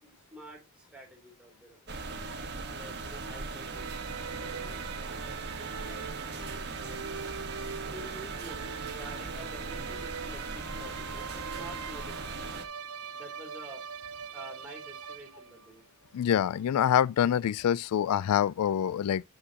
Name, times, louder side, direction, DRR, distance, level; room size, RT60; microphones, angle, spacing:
voice 1, 0.0-2.0 2.7-3.9 4.2-5.3 5.5-7.2 7.8-12.5 13.1-13.8 14.3-15.8, right 1 dB, 5° right, 3.1 m, -49 dB
sound 1, 1.9-12.6, right 3 dB, 50° right, 1.4 m, -39 dB
sound 2, 3.6-15.7, right 7 dB, 85° right, 0.7 m, -43 dB
voice 2, 16.1-19.2, left 9 dB, 85° left, 0.3 m, -26 dB
8.9 x 6.8 x 2.9 m
head